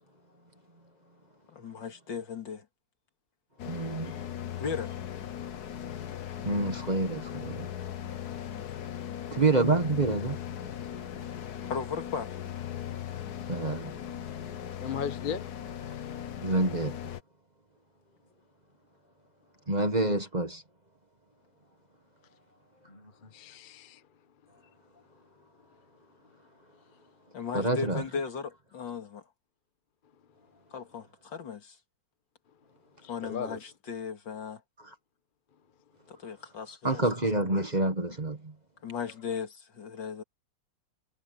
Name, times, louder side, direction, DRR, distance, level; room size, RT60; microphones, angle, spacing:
voice 1, 1.5-2.7 4.0-4.2 4.6-4.9 11.6-12.4 27.3-29.2 30.7-31.8 33.1-34.6 36.1-37.0 38.8-40.2, left 6 dB, 80° left, 3.0 m, -37 dB
sound 1, 3.6-17.2, left 10 dB, 60° left, 1.5 m, -38 dB
voice 2, 3.7-4.2 6.4-7.7 9.3-10.4 13.5-13.9 16.4-17.0 19.7-20.6 27.5-28.0 36.8-38.5, right 2 dB, 25° right, 1.6 m, -27 dB
voice 3, 14.8-15.5 22.9-24.0 33.0-33.6, left 7 dB, 30° left, 1.1 m, -37 dB
omnidirectional pair, 2.0 m